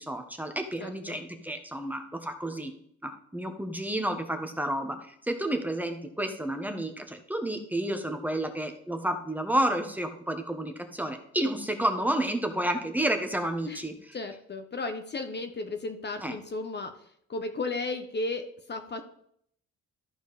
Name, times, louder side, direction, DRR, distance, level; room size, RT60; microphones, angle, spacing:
voice 1, 0.0-2.7 3.0-14.2 16.2-16.3, right 1 dB, 5° right, 5 dB, 1.3 m, -31 dB
voice 2, 0.8-1.2 13.6-13.8 14.1-19.0, left 3 dB, 35° left, 6 dB, 1.1 m, -35 dB
14.0 x 4.7 x 4.1 m, 0.66 s
cardioid pair, 90°, 30 cm